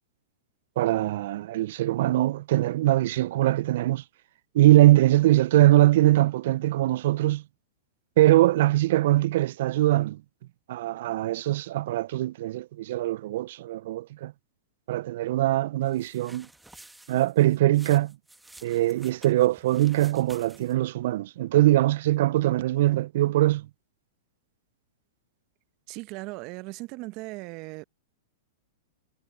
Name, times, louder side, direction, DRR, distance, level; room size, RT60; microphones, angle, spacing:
voice 1, 0.8-4.0 4.5-7.4 8.2-10.2 10.7-14.3 14.9-16.5 17.1-18.2 18.6-23.7, right 15 dB, 60° right, 0.4 m, -22 dB
sound 1, 15.9-20.9, right 2 dB, 5° right, 1.6 m, -52 dB
voice 2, 25.9-27.8, right 23 dB, 45° right, 0.9 m, -38 dB
hypercardioid pair, 115°, 0 cm